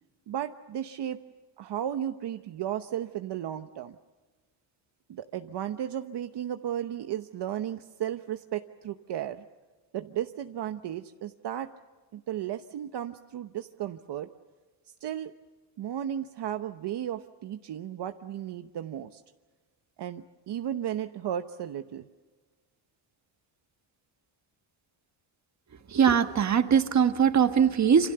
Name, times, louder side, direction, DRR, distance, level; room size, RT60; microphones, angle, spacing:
voice 1, 0.3-1.2 1.6-4.0 5.1-9.4 9.9-11.7 12.1-14.3 15.0-15.3 15.8-19.2 20.0-22.1, right 10 dB, 60° right, 7 dB, 1.0 m, -34 dB
voice 2, 25.9-28.1, right 7 dB, 35° right, 8 dB, 1.5 m, -21 dB
28.0 x 27.0 x 6.8 m, 1.4 s
cardioid pair, 160°, 47 cm